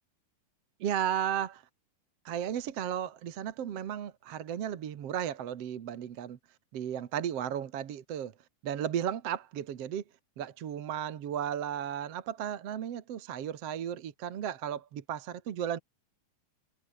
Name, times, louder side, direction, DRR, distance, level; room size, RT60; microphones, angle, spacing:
voice 1, 0.8-1.6 2.3-6.4 6.7-8.3 8.6-10.0 10.4-15.8, right 9 dB, 55° right, 2.2 m, -34 dB
omnidirectional pair, 3.9 m